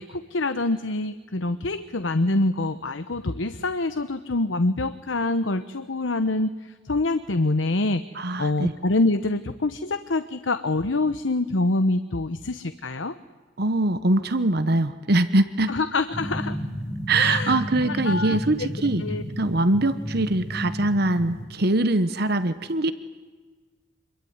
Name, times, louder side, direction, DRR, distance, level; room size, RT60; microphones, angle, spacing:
voice 1, 0.0-13.1 15.7-16.6 17.1-17.6 17.8-18.4 19.0-19.2, left 2 dB, 85° left, 11 dB, 1.0 m, -25 dB
voice 2, 8.2-8.7 13.6-15.8 17.1-19.0 19.4-22.9, right 2 dB, 55° right, 12 dB, 1.1 m, -23 dB
sound 1, 16.1-21.4, equal, 15° left, 8.0 m, -32 dB
26.5 x 22.5 x 9.6 m, 1.4 s
head